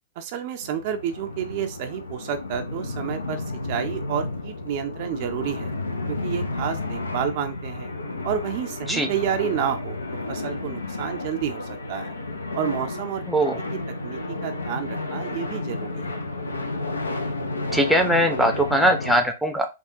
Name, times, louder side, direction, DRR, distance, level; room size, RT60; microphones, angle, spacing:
voice 1, 0.2-5.7 6.1-7.9 8.2-12.1 12.5-13.2 14.0-16.1, right 9 dB, 50° right, 7 dB, 0.4 m, -30 dB
sound 1, 0.6-19.2, left 2 dB, 90° left, 0.5 m, -32 dB
voice 2, 13.3-13.6 17.7-19.7, equal, ahead, 4 dB, 0.6 m, -21 dB
3.5 x 2.3 x 2.7 m, 0.26 s
hypercardioid pair, 110°, 0 cm